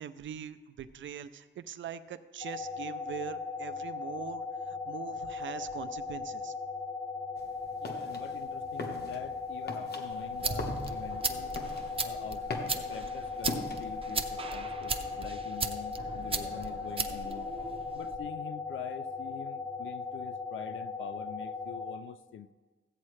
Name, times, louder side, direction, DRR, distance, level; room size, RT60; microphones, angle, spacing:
voice 1, 0.0-6.5, right 9 dB, 75° right, 0.5 m, -42 dB
sound 1, 2.4-22.0, left 4 dB, 30° left, 0.6 m, -38 dB
sound 2, 7.4-14.3, left 3 dB, 55° left, 1.2 m, -42 dB
voice 2, 7.8-11.6 12.0-17.5 17.9-22.5, left 10 dB, 80° left, 0.4 m, -45 dB
sound 3, 10.1-18.2, right 4 dB, 30° right, 0.6 m, -37 dB
15.0 x 8.4 x 3.2 m
wide cardioid pair, 160°, 20 cm